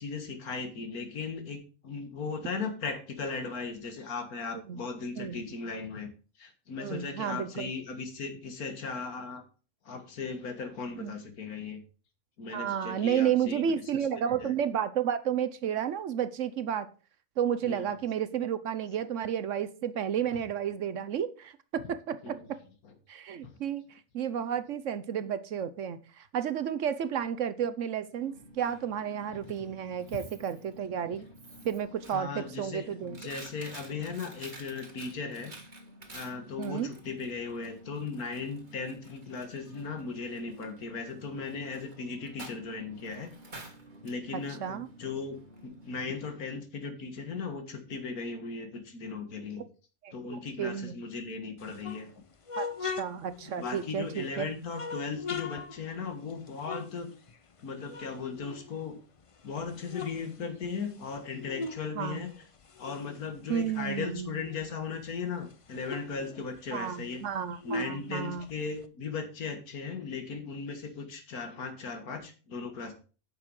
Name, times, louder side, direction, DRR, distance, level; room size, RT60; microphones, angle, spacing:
voice 1, 0.0-6.1 6.4-9.4 9.9-11.8 12.4-14.6 17.6-17.9 21.8-21.9 22.2-22.5 22.8-22.9 23.4-23.6 31.1-31.2 32.1-35.5 36.1-43.3 44.0-49.7 50.1-52.1 53.6-57.1 57.6-59.0 59.4-62.3 62.8-67.2 67.6-72.9, left 5 dB, 85° left, 7 dB, 2.0 m, -37 dB
voice 2, 6.8-7.7 11.0-11.1 12.5-16.9 17.4-22.4 23.1-23.8 24.1-31.3 31.6-33.2 36.6-36.9 44.6-44.9 50.0-50.9 52.6-54.5 62.0-62.3 63.5-64.3 66.7-68.5, right 8 dB, 65° right, 12 dB, 1.0 m, -32 dB
Coin (dropping), 28.2-46.0, right 1 dB, 35° right, 1.8 m, -50 dB
sound 1, 51.6-54.3 54.7-57.6 57.9-59.2 59.6-61.9 62.2-64.7 65.1-65.2 65.4-68.9, left 4 dB, 50° left, 0.3 m, -41 dB
9.5 x 6.7 x 4.7 m, 0.37 s
omnidirectional pair, 1.5 m